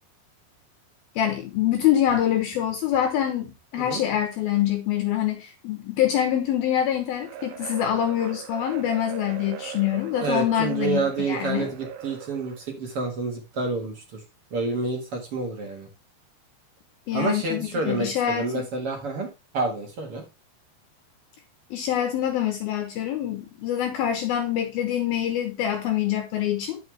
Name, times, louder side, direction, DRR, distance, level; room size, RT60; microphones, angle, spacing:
voice 1, 1.2-11.7 17.1-18.6 21.7-26.8, left 11 dB, 70° left, 2.5 m, -25 dB
sound 1, 7.2-12.7, right 9 dB, 80° right, 1.8 m, -39 dB
voice 2, 10.2-14.2 14.5-15.9 17.1-20.2, right 3 dB, 55° right, 1.6 m, -29 dB
10.0 x 6.4 x 3.3 m
omnidirectional pair, 5.0 m